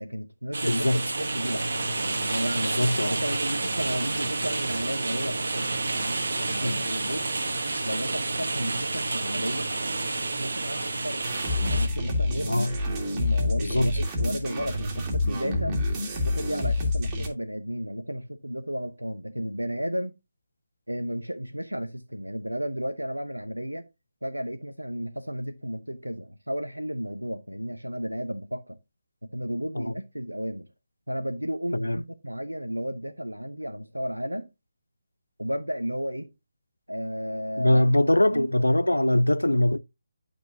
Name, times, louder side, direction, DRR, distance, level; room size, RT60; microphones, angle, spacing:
voice 1, 0.0-1.7 1.9-2.8 3.1-7.3 7.8-9.7 10.4-11.2 11.7-12.6 13.0-15.8 16.1-20.1 20.9-23.9 24.2-28.8 29.2-30.7 31.1-34.5 35.4-36.3 36.9-37.9 38.2-38.5, equal, 90° right, 0.7 m, -33 dB
sound 1, 0.5-11.9, right 3 dB, 60° right, 1.5 m, -29 dB
voice 2, 0.6-1.0 2.8-3.2 6.6-6.8 12.4-12.7 13.6-13.9 29.7-29.9 31.7-32.0 37.6-39.8, left 1 dB, 80° left, 0.5 m, -22 dB
sound 2, 11.2-17.3, left 2 dB, 20° right, 2.1 m, -27 dB
10.5 x 6.1 x 2.8 m
figure-of-eight pair, 145°, 0 cm